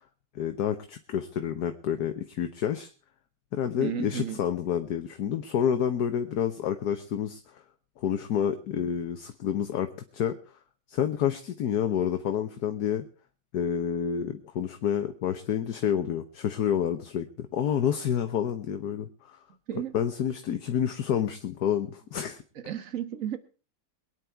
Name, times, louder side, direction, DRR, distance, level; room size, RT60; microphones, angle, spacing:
voice 1, 0.3-2.9 3.5-7.6 8.0-10.3 10.9-13.0 13.5-19.4 19.9-22.4, left 9 dB, 65° left, 1.4 m, -29 dB
voice 2, 3.8-4.4 19.7-19.9 22.5-23.4, right 10 dB, 50° right, 1.5 m, -33 dB
23.0 x 9.6 x 4.5 m
omnidirectional pair, 1.9 m